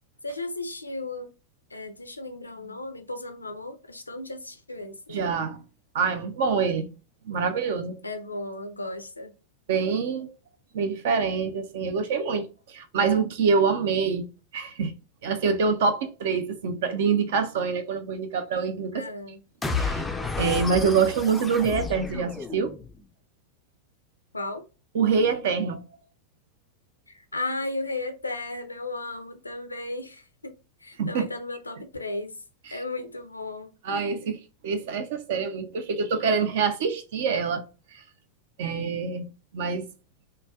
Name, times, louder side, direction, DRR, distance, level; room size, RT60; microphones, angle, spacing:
voice 1, 0.2-1.3 1.7-5.2 8.0-9.3 18.9-19.4 24.3-24.6 27.1-32.4 32.7-33.7, left 2 dB, 80° left, 0.4 m, -35 dB
voice 2, 5.1-5.6 5.9-6.9 7.3-8.0 9.7-10.3 10.7-14.3 14.5-14.9 15.2-18.9 19.7-20.0 20.4-22.7 24.9-25.8 31.0-31.3 33.8-34.4 34.6-37.6 38.6-39.9, right 5 dB, 55° right, 0.5 m, -25 dB
sound 1, 19.6-23.0, left 4 dB, 10° left, 0.4 m, -31 dB
3.2 x 2.2 x 2.2 m
figure-of-eight pair, 90°, 0 cm